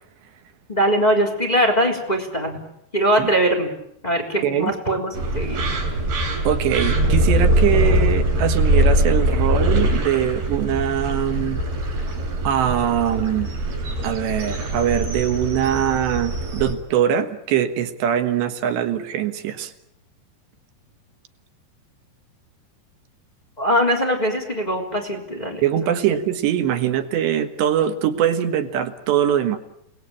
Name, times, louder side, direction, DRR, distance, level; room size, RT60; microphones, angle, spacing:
voice 1, 0.7-2.6 2.9-3.7 4.0-5.6 23.6-25.9, equal, 10° left, 2 dB, 3.4 m, -21 dB
voice 2, 4.4-4.7 6.5-11.6 12.5-13.5 14.0-19.7 25.6-29.6, right 10 dB, 85° right, 8 dB, 3.7 m, -22 dB
sound 1, 5.1-16.7, right 1 dB, 65° right, 6.2 m, -22 dB
29.0 x 19.5 x 8.6 m, 0.77 s
omnidirectional pair, 4.8 m